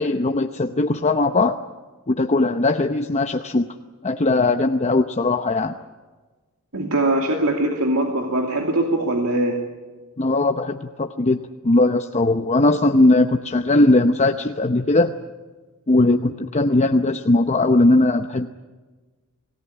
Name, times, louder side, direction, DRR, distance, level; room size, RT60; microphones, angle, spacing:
voice 1, 0.0-1.6 2.1-3.7 4.0-5.8 10.2-15.1 15.9-18.5, left 2 dB, 30° left, 6 dB, 0.8 m, -19 dB
voice 2, 6.7-9.6, right 1 dB, 75° right, 1 dB, 2.6 m, -21 dB
26.0 x 17.5 x 10.0 m, 1.3 s
head